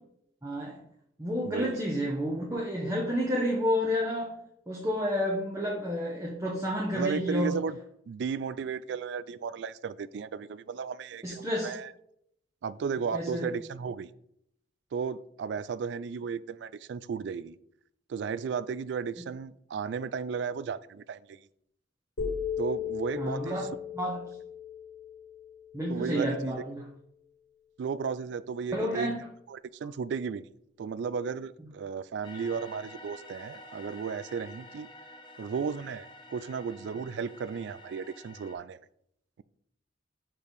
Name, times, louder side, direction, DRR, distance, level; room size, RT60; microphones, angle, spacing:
voice 1, 0.4-0.8 1.2-4.3 4.7-7.5 11.2-11.7 13.1-13.5 23.2-24.2 25.7-26.8 28.7-29.3, equal, 15° right, -2 dB, 0.8 m, -30 dB
voice 2, 1.4-1.8 6.9-7.8 8.1-11.9 12.6-14.1 14.9-17.6 18.1-21.4 22.6-23.7 25.9-26.6 27.8-29.2 29.5-30.5 30.8-34.9 35.4-38.8, right 6 dB, 65° right, 18 dB, 0.3 m, -34 dB
sound 1, 22.2-26.3, left 7 dB, 65° left, 1.8 m, -36 dB
sound 2, 32.2-38.5, left 2 dB, 25° left, 0.7 m, -49 dB
4.9 x 4.5 x 5.3 m, 0.73 s
head